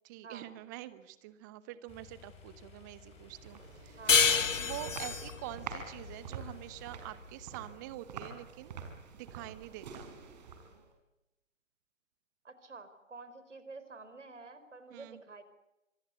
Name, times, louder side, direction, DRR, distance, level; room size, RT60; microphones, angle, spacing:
voice 1, 0.0-4.0 4.3-8.8 9.1-10.1 14.9-15.2, right 15 dB, 15° right, 15 dB, 1.0 m, -46 dB
sound 1, 1.9-7.0, left 6 dB, 15° left, 6.5 m, -56 dB
sound 2, 3.1-10.9, right 5 dB, 35° right, 5.1 m, -47 dB
voice 2, 4.0-4.3 12.4-15.4, right 3 dB, 70° right, 11 dB, 4.6 m, -49 dB
sound 3, 4.1-7.3, left 6 dB, 75° left, 1.0 m, -29 dB
26.5 x 21.5 x 8.3 m, 0.93 s
figure-of-eight pair, 140°, 38 cm